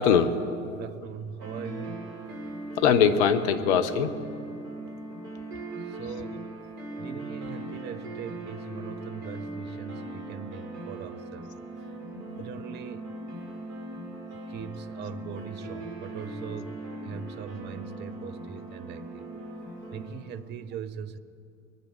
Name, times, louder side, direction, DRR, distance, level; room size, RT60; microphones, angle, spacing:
voice 1, 0.0-0.8 2.8-4.1 12.1-12.6, left 7 dB, 55° left, 10 dB, 1.0 m, -23 dB
voice 2, 0.7-2.1 5.9-6.5 7.0-11.5 12.4-13.1 14.5-19.3 19.9-21.2, right 7 dB, 25° right, 13 dB, 0.6 m, -40 dB
sound 1, 1.4-20.1, right 2 dB, 55° right, 4.4 m, -39 dB
22.5 x 9.4 x 5.0 m, 2.4 s
figure-of-eight pair, 80°, 42 cm